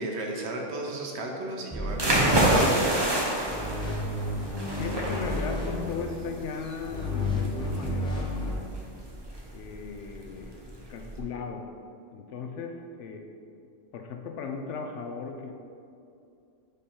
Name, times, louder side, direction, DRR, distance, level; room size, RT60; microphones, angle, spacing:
voice 1, 0.0-2.9, right 1 dB, 60° right, 0 dB, 1.0 m, -34 dB
sound 1, 1.7-3.1 3.4-6.3 6.8-8.6, left 1 dB, 5° left, 0.9 m, -32 dB
sound 2, 1.9-11.2, right 1 dB, 25° right, 0.7 m, -28 dB
voice 2, 4.8-8.7 9.5-11.7 12.1-13.3 13.9-15.5, left 5 dB, 75° left, 4 dB, 0.9 m, -37 dB
5.3 x 5.1 x 4.3 m, 2.5 s
omnidirectional pair, 1.3 m